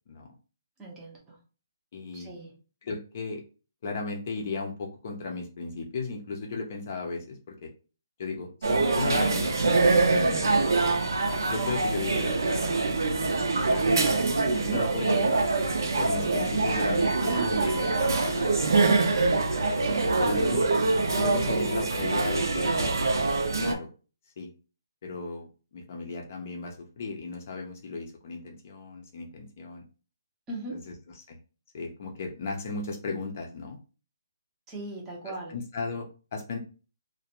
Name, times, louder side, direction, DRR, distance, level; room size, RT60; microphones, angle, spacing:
voice 1, 0.8-1.4 2.1-2.6 13.7-13.8 14.5-14.9 19.8-20.2 30.5-30.9 34.7-35.6, right 2 dB, 10° right, -3 dB, 0.6 m, -38 dB
voice 2, 1.9-2.3 2.8-3.4 3.8-7.7 8.2-11.0 11.4-12.6 13.6-13.9 14.7-15.4 16.0-19.1 20.2-20.7 21.2-22.9 23.6-23.9 24.4-24.5 25.0-29.8 30.7-30.8 31.3-31.4 31.7-33.8 35.3-36.6, left 3 dB, 35° left, 2 dB, 0.5 m, -35 dB
sound 1, 8.6-23.7, right 3 dB, 75° right, 0.5 m, -24 dB
2.4 x 2.1 x 2.8 m, 0.35 s
hypercardioid pair, 170°, 2 cm